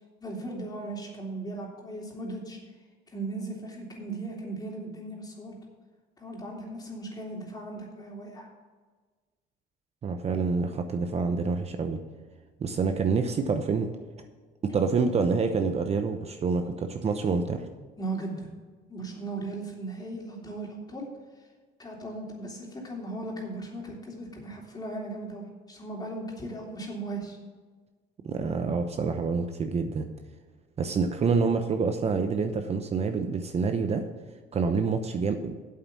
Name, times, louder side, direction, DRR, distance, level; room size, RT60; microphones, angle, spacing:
voice 1, 0.2-2.6 3.1-5.6 6.2-8.5 18.0-18.5 18.9-21.1 21.8-27.4, right 2 dB, 25° left, -1 dB, 3.2 m, -37 dB
voice 2, 10.0-12.0 12.6-13.9 14.6-17.6 28.2-30.1 30.8-34.0 34.5-35.5, right 5 dB, 40° right, 7 dB, 0.8 m, -27 dB
8.5 x 7.9 x 6.0 m, 1.4 s
cardioid pair, 110°, 17 cm